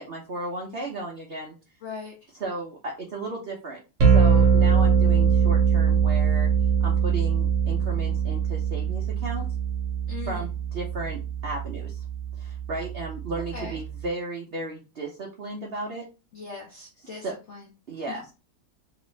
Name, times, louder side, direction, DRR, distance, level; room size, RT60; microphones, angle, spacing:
voice 1, 0.0-1.5 2.3-6.5 6.8-9.5 10.3-12.1 12.4-16.0 17.0-17.3 17.9-18.3, right 2 dB, 75° right, -2 dB, 0.5 m, -35 dB
voice 2, 1.8-2.3 10.1-10.5 13.5-13.8 16.3-17.7, left 5 dB, 70° left, 0 dB, 0.6 m, -39 dB
sound 1, 4.0-14.0, right 6 dB, 55° right, 1.0 m, -23 dB
3.0 x 2.5 x 3.1 m, 0.31 s
omnidirectional pair, 1.9 m